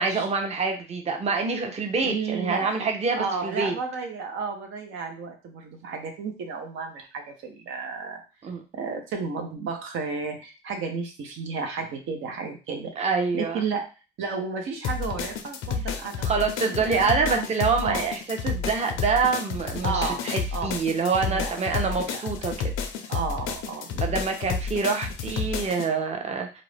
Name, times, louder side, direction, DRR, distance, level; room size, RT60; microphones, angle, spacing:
voice 1, 0.0-3.8 8.4-8.6 13.0-13.6 16.2-22.7 24.0-26.6, right 4 dB, 35° right, 3 dB, 0.6 m, -26 dB
voice 2, 2.0-2.7 3.2-8.2 8.7-13.1 13.3-13.9 14.2-16.3 16.6-17.5 17.8-18.0 19.8-20.2 20.5-20.8 21.2-21.5 22.0-22.3 23.1-24.2, right 5 dB, 80° right, 4 dB, 0.6 m, -32 dB
sound 1, 14.8-25.9, left 5 dB, 85° left, 0.5 m, -31 dB
2.4 x 2.0 x 3.2 m, 0.32 s
cardioid pair, 90°, 20 cm